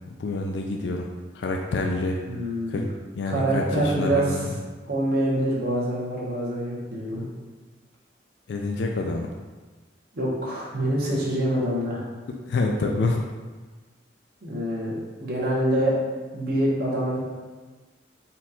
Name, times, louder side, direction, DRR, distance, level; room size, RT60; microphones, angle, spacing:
voice 1, 0.1-1.1 1.3-2.2 2.7-2.9 3.1-4.5 8.5-9.3 12.3-13.2, left 3 dB, 65° left, 1 dB, 0.3 m, -27 dB
voice 2, 2.3-2.8 3.3-4.5 4.9-7.3 10.1-12.1 14.4-15.9 16.3-17.2, right 1 dB, 55° right, -5 dB, 1.1 m, -25 dB
4.2 x 2.4 x 4.2 m, 1.3 s
head